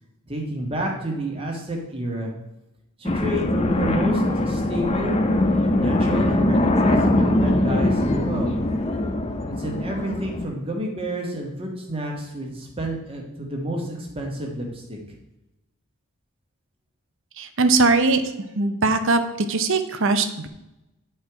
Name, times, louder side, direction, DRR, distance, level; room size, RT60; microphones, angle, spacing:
voice 1, 0.3-2.3 3.0-5.2 5.7-8.6 9.5-15.0, right 1 dB, 25° right, 0 dB, 1.5 m, -30 dB
sound 1, 3.1-10.5, left 1 dB, 25° left, 0.6 m, -22 dB
voice 2, 17.4-18.2 18.6-19.2 19.5-20.5, right 3 dB, 60° right, 9 dB, 0.7 m, -20 dB
9.6 x 4.6 x 4.6 m, 0.94 s
head